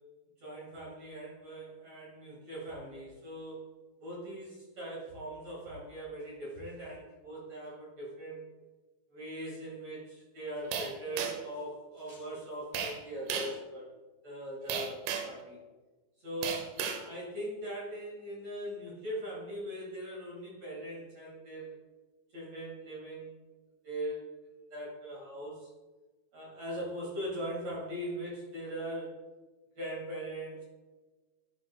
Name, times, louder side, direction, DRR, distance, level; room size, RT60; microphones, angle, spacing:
voice 1, 0.4-3.7 4.0-8.4 9.1-13.9 14.2-15.6 16.2-21.7 22.3-23.3 23.8-24.3 24.7-25.7 26.3-29.2 29.8-30.6, right 1 dB, 45° right, -5 dB, 2.5 m, -40 dB
sound 1, 10.7-11.5 12.7-13.0 13.3-13.6 14.7-15.4 16.4-17.0, right 7 dB, 80° right, 2.7 m, -34 dB
11.0 x 6.1 x 2.3 m, 1.2 s
omnidirectional pair, 5.1 m